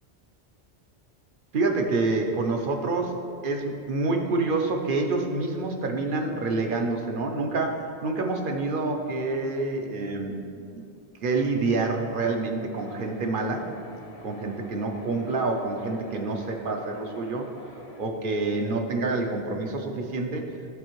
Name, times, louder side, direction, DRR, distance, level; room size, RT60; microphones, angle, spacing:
voice 1, 1.5-3.2 3.4-10.4 10.7-10.8 11.2-13.7 14.2-17.5 18.0-20.4, right 3 dB, 55° right, 3 dB, 0.8 m, -27 dB
sound 1, 12.7-18.1, equal, 70° left, 1.2 m, -46 dB
12.5 x 4.2 x 3.1 m, 2.4 s
omnidirectional pair, 1.1 m